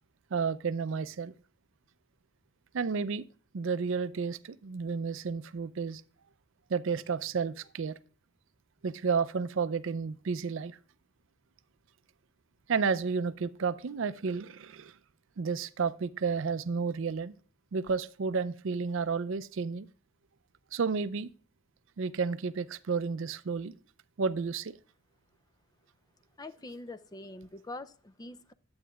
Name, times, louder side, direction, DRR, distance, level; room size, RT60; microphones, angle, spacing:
voice 1, 0.3-1.3 2.7-3.2 3.5-6.0 6.7-8.0 8.8-10.8 12.7-14.9 15.4-17.4 17.7-19.9 20.7-21.3 22.0-23.7 24.2-24.8, right 5 dB, 60° right, 0.4 m, -31 dB
voice 2, 26.4-28.5, left 2 dB, 20° left, 0.4 m, -44 dB
11.0 x 8.7 x 2.3 m
head